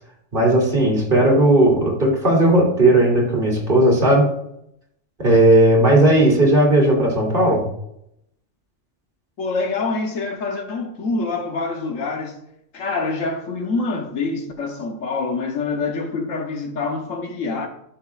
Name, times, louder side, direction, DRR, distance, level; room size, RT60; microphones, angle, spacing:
voice 1, 0.3-4.3 5.2-7.6, right 1 dB, 40° right, 2.7 m, -16 dB
voice 2, 9.4-12.4 12.7-17.7, left 3 dB, 75° left, 1.3 m, -26 dB
10.5 x 6.3 x 2.4 m
omnidirectional pair, 1.3 m